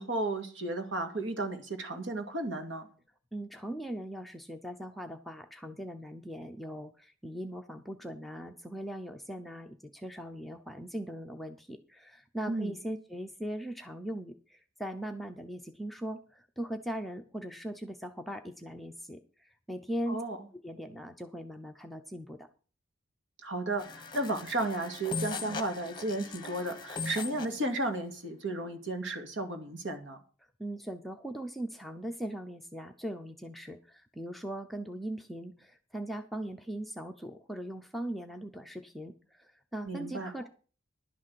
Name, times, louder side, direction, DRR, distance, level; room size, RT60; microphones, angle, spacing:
voice 1, 0.0-2.9 12.5-12.7 20.1-20.4 23.4-30.2 39.9-40.3, right 2 dB, 65° right, 6 dB, 2.2 m, -34 dB
voice 2, 3.3-20.2 20.6-22.5 30.6-40.5, right 1 dB, ahead, 4 dB, 0.6 m, -40 dB
sound 1, 23.8-27.6, left 4 dB, 20° left, 0.9 m, -39 dB
11.5 x 6.3 x 7.6 m, 0.38 s
head